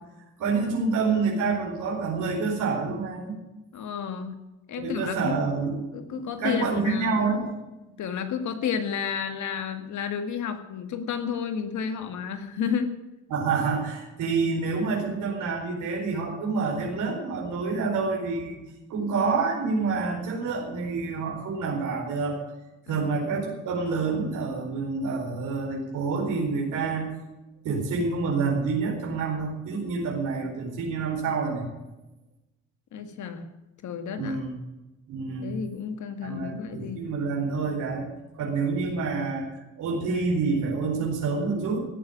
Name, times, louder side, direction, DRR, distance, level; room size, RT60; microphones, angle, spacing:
voice 1, 0.4-3.4 4.7-5.8 6.1-7.5 13.3-18.6 18.9-22.4 22.9-27.1 27.6-31.7 34.2-34.5 35.1-35.5 36.2-38.1 38.4-39.5 39.8-41.9, right 4 dB, 85° right, -1 dB, 4.5 m, -27 dB
voice 2, 3.7-4.4 4.7-5.4 5.9-7.2 8.0-13.0 22.9-23.3 32.9-33.4 33.8-34.4 35.4-37.1, left 7 dB, 75° left, 8 dB, 2.1 m, -31 dB
17.0 x 7.2 x 9.5 m, 1.0 s
cardioid pair, 90°, 30 cm